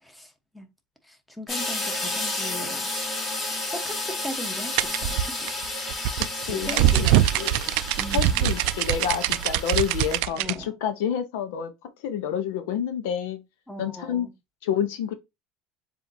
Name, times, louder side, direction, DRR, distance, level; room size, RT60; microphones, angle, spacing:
voice 1, 0.0-0.7 1.0-2.9 3.7-5.5 6.5-7.4 7.9-8.6 10.3-10.8 13.7-14.3, equal, 5° left, 1.0 m, -38 dB
sound 1, 1.5-10.2, left 2 dB, 30° left, 3.2 m, -32 dB
sound 2, 4.8-10.6, right 13 dB, 75° right, 0.3 m, -23 dB
voice 2, 6.3-7.1 7.4-7.7 8.1-11.7 12.0-13.4 13.8-14.3 14.6-15.1, left 8 dB, 85° left, 0.8 m, -28 dB
7.1 x 2.7 x 2.7 m
supercardioid pair, 115°, 0 cm